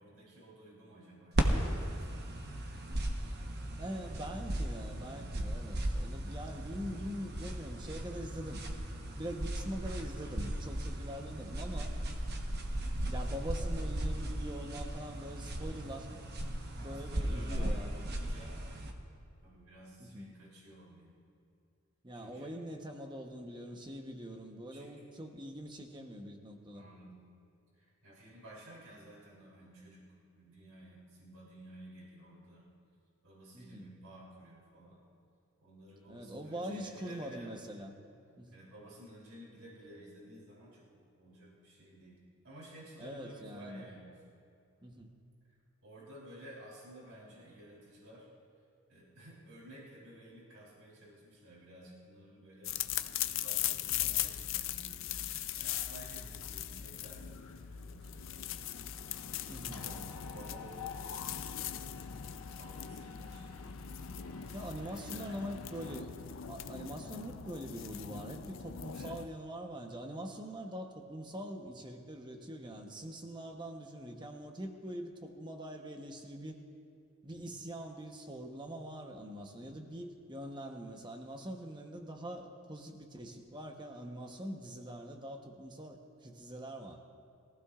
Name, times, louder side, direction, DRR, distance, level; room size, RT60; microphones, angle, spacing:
voice 1, 0.0-1.5 2.1-2.5 16.7-18.6 19.4-21.1 22.1-22.5 24.7-24.9 26.7-27.2 27.8-30.1 30.3-32.7 33.2-35.0 35.6-37.5 38.5-40.9 41.2-42.2 42.4-44.1 45.8-48.3 48.9-58.5 59.7-61.8 62.3-63.7 64.5-65.4 68.9-69.2 72.7-72.8 77.3-77.5 79.5-80.0, right 1 dB, 80° right, -5 dB, 3.3 m, -54 dB
sound 1, 1.4-18.9, right 1 dB, 45° right, 1.1 m, -36 dB
voice 2, 3.8-8.6 9.1-11.9 13.0-16.1 16.8-17.9 20.0-20.3 22.0-26.8 33.5-33.9 36.1-38.0 38.4-38.5 43.0-43.9 44.8-45.2 53.9-54.1 56.2-56.3 59.5-59.9 64.5-66.1 66.5-76.6 77.2-87.0, equal, 20° right, 3 dB, 1.0 m, -43 dB
sound 2, 52.6-69.3, left 11 dB, 60° left, 0.5 m, -40 dB
Mechanisms, 56.4-57.0 57.3-57.6 57.8-66.0, left 5 dB, 85° left, 1.0 m, -49 dB
22.0 x 15.5 x 2.5 m, 2.5 s
head